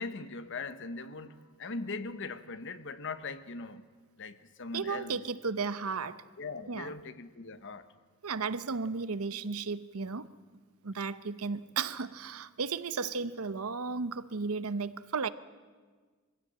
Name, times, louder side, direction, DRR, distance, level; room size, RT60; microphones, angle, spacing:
voice 1, 0.0-3.8 4.2-5.2 6.4-7.8, left 3 dB, 60° left, 1.1 m, -40 dB
voice 2, 4.7-6.2 6.7-6.9 8.2-10.3 10.8-15.3, right 4 dB, 80° right, 0.8 m, -34 dB
23.5 x 16.0 x 8.8 m
head